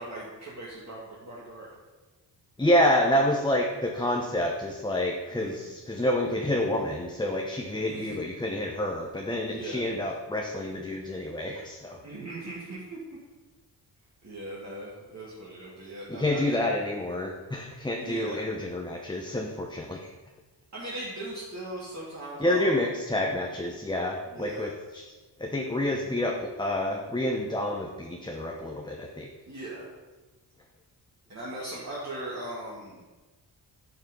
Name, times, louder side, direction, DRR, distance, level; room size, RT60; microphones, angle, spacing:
voice 1, 0.0-1.7 5.3-5.7 7.8-8.2 9.5-9.9 12.0-13.0 14.2-16.7 17.9-18.4 20.7-22.8 24.3-24.7 29.5-29.9 31.3-33.0, right 1 dB, 40° right, -7 dB, 2.4 m, -39 dB
voice 2, 2.6-12.0 16.1-20.0 22.4-25.0 25.4-29.3, left 1 dB, 10° left, 1 dB, 0.9 m, -28 dB
11.0 x 5.9 x 5.4 m, 1.2 s
wide cardioid pair, 120°, 44 cm